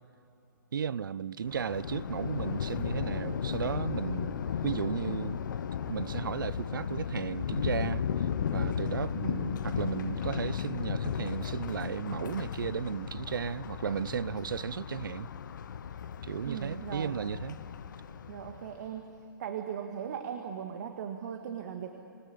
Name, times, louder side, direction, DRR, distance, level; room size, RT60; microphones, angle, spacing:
voice 1, 0.7-5.4 5.9-8.3 8.5-15.3 16.2-17.6, right 7 dB, 75° right, 0.6 m, -35 dB
Thunder, 1.5-18.9, left 7 dB, 65° left, 1.0 m, -35 dB
voice 2, 16.5-17.2 18.3-19.1 19.4-21.9, right 8 dB, 55° right, 1.7 m, -38 dB
26.0 x 19.0 x 8.4 m
hypercardioid pair, 130°, 11 cm